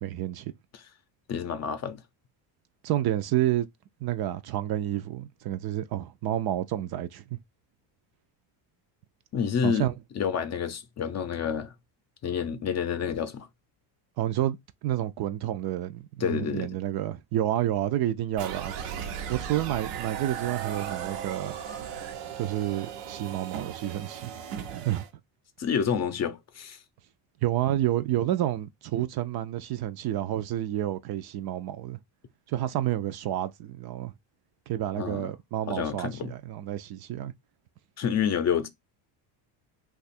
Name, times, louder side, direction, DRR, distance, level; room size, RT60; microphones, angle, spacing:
voice 1, 0.0-0.5 2.8-3.7 4.0-7.2 9.6-9.9 14.2-14.6 14.8-18.7 19.3-21.5 22.3-24.3 24.6-25.0 27.4-32.0 32.5-34.1 34.7-37.3, right 12 dB, 50° right, 0.5 m, -29 dB
voice 2, 1.3-2.0 9.3-9.9 10.2-11.7 12.2-13.5 16.2-16.7 25.6-26.8 34.9-35.3 35.7-36.3 38.0-38.7, left 7 dB, 35° left, 0.6 m, -28 dB
sound 1, 18.4-25.1, right 8 dB, 90° right, 0.8 m, -37 dB
2.9 x 2.4 x 4.2 m
supercardioid pair, 100°, 48 cm